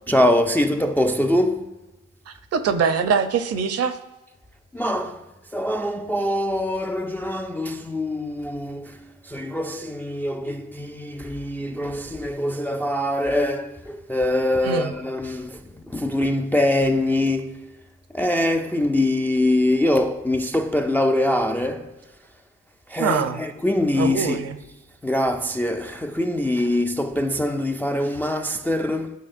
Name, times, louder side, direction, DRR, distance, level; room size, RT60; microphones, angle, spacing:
voice 1, 0.1-1.8 4.7-17.8 18.1-22.1 22.9-24.4 25.0-29.2, left 1 dB, 5° left, 0.3 m, -23 dB
voice 2, 2.3-4.0 14.6-14.9 23.0-23.4 23.9-24.6, right 6 dB, 55° right, 0.6 m, -23 dB
11.0 x 4.1 x 2.5 m
cardioid pair, 90°, 30 cm